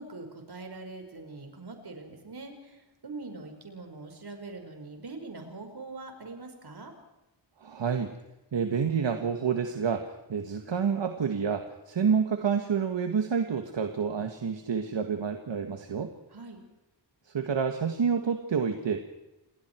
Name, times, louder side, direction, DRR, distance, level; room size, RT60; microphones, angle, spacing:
voice 1, 0.0-6.9 16.3-16.6, right 3 dB, 55° right, 5 dB, 5.4 m, -43 dB
voice 2, 7.6-8.1 8.5-16.1 17.3-19.0, right 6 dB, 75° right, 6 dB, 1.9 m, -28 dB
29.0 x 20.5 x 4.7 m, 0.95 s
wide cardioid pair, 100°, 45 cm